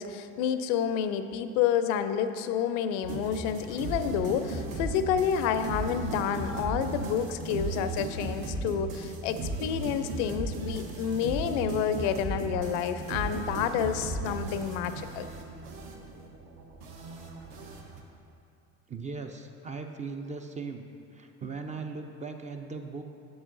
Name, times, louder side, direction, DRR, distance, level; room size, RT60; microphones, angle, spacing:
voice 1, 0.0-15.3, left 8 dB, 70° left, 10 dB, 0.5 m, -29 dB
sound 1, 3.0-18.0, right 2 dB, 60° right, 1.0 m, -36 dB
voice 2, 18.9-20.9 21.1-23.0, right 4 dB, 20° right, 5 dB, 0.4 m, -38 dB
7.9 x 7.1 x 2.5 m, 2.6 s
hypercardioid pair, 75°, 38 cm